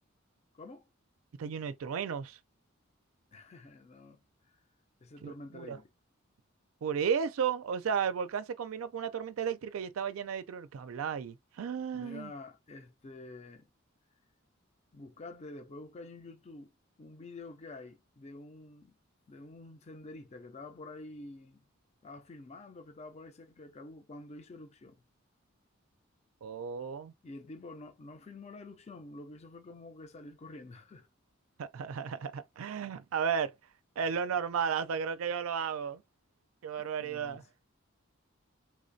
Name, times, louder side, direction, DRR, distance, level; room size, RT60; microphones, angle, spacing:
voice 1, 0.5-0.9 3.3-4.6 5.0-5.9 11.9-13.7 14.9-16.7 17.0-19.0 19.3-21.6 22.0-25.0 27.2-31.1 36.8-37.5, left 2 dB, 30° left, 0.4 m, -48 dB
voice 2, 1.4-2.4 5.2-5.8 6.8-12.3 26.4-27.1 31.6-33.5 34.0-36.0 36.6-37.4, right 7 dB, 80° right, 0.4 m, -34 dB
3.4 x 3.2 x 2.6 m
head